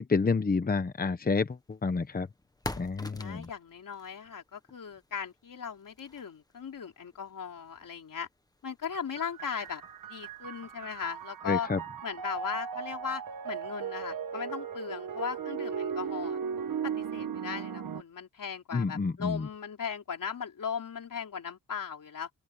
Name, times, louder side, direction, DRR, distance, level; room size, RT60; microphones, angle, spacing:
voice 1, 0.0-2.3 2.7-3.5 11.4-11.8 18.7-19.5, left 4 dB, 25° left, 0.9 m, -29 dB
sound 1, 1.1-11.4, left 2 dB, 10° left, 1.2 m, -48 dB
voice 2, 3.2-8.3 8.6-9.8 10.1-11.7 12.0-16.4 16.8-22.3, left 7 dB, 70° left, 3.9 m, -38 dB
sound 2, 9.2-18.0, right 7 dB, 80° right, 1.8 m, -37 dB
open air
wide cardioid pair, 120°, 33 cm